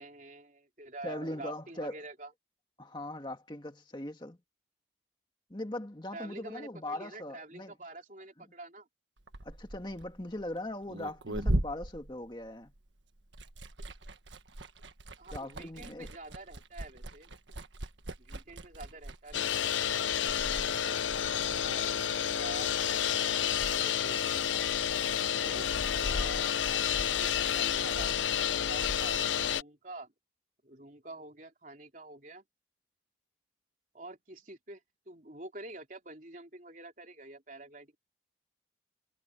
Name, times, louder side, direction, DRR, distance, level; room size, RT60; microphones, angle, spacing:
voice 1, 0.0-2.3 6.1-8.9 15.2-17.3 18.2-19.6 20.7-21.0 21.5-24.5 25.4-25.7 25.9-26.6 27.0-30.1 30.6-32.4 33.9-38.0, right 2 dB, 45° right, 3.7 m, -47 dB
voice 2, 1.0-2.0 2.8-4.4 5.5-7.7 9.4-12.7 15.3-16.1, left 1 dB, 25° left, 1.9 m, -40 dB
Liquid, 9.2-12.9 13.2-20.7, right 1 dB, 80° right, 1.6 m, -38 dB
sound 1, 19.3-29.6, left 9 dB, 85° left, 0.7 m, -30 dB
head